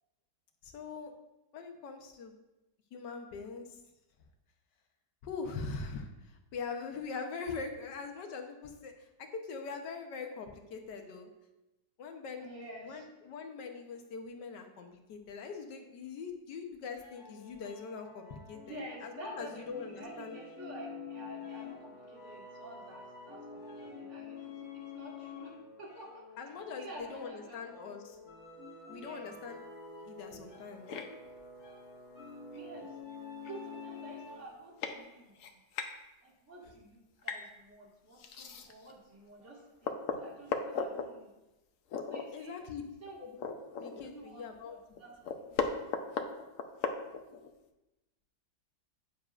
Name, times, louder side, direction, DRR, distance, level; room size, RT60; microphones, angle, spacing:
voice 1, 0.6-1.1 1.5-2.3 2.9-3.8 5.2-11.3 12.0-12.5 12.8-20.4 26.4-28.2 28.9-29.6 30.0-30.9 42.3-42.8 43.2-43.3 43.7-44.8, left 5 dB, 80° left, 5 dB, 1.5 m, -42 dB
voice 2, 12.4-13.1 18.6-27.7 28.9-29.3 32.5-32.9 33.2-35.6 36.2-41.3 42.1-42.5 43.0-43.2 44.0-46.2, right 1 dB, 40° right, -4 dB, 2.2 m, -50 dB
sound 1, 16.9-34.6, left 4 dB, 45° left, 1.9 m, -48 dB
sound 2, 30.9-31.1 32.5-32.6 33.2-33.3 33.5-33.8 34.4-34.5 34.8-35.0 35.4-35.9 37.2-37.5 38.2-38.9 39.4-39.5 39.8-41.1 41.9-42.2 42.6-42.7 43.1-44.2 44.6-44.7 45.0-47.5, left 6 dB, 60° left, 0.9 m, -36 dB
9.7 x 8.8 x 2.5 m, 0.99 s
omnidirectional pair, 1.9 m